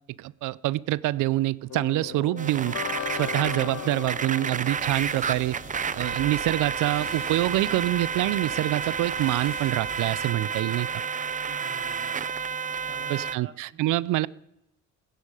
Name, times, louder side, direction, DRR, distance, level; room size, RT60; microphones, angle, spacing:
voice 1, 0.2-2.8 3.1-5.6 5.9-10.9 13.1-14.3, right 16 dB, 85° right, 0.5 m, -26 dB
sound 1, 1.7-6.7, left 11 dB, 70° left, 0.8 m, -38 dB
sound 2, 2.4-13.4, right 6 dB, 25° right, 0.4 m, -31 dB
sound 3, 4.6-10.3, left 2 dB, 50° left, 5.3 m, -46 dB
voice 2, 10.6-12.2 12.9-14.0, right 6 dB, 45° right, 1.9 m, -48 dB
16.0 x 15.0 x 4.9 m
cardioid pair, 90°, 30 cm